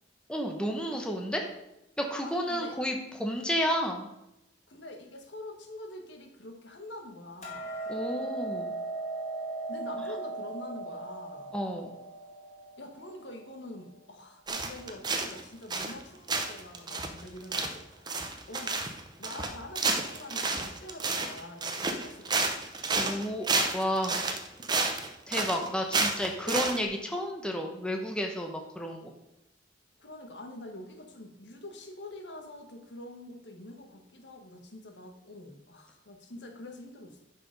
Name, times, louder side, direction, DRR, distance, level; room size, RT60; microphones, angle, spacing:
voice 1, 0.3-1.5 2.0-4.1 7.9-8.7 11.5-11.9 23.0-24.2 25.3-29.1, equal, 5° left, 2 dB, 1.0 m, -31 dB
voice 2, 2.2-2.8 4.7-7.8 9.7-11.5 12.8-18.9 19.2-22.5 26.4-26.7 30.0-37.2, left 1 dB, 70° left, 4 dB, 1.5 m, -45 dB
Hammer, 7.4-13.6, right 3 dB, 40° left, 2.3 m, -38 dB
sound 1, 14.5-15.4 15.7-16.0 16.3-26.8, right 3 dB, 25° right, 0.8 m, -30 dB
10.0 x 5.1 x 5.3 m, 0.88 s
head